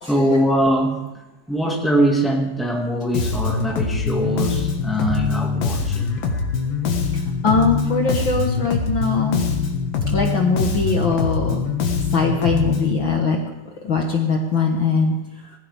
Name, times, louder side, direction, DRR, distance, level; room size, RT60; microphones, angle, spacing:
voice 1, 0.1-6.6, right 1 dB, ahead, -1 dB, 0.6 m, -22 dB
Bass guitar, 3.1-13.0, left 5 dB, 85° left, 3.2 m, -23 dB
voice 2, 7.4-9.4 10.1-11.6 12.1-13.4 13.8-15.1, left 4 dB, 55° left, 1 dB, 1.3 m, -21 dB
19.5 x 15.5 x 3.5 m, 0.96 s
omnidirectional pair, 3.8 m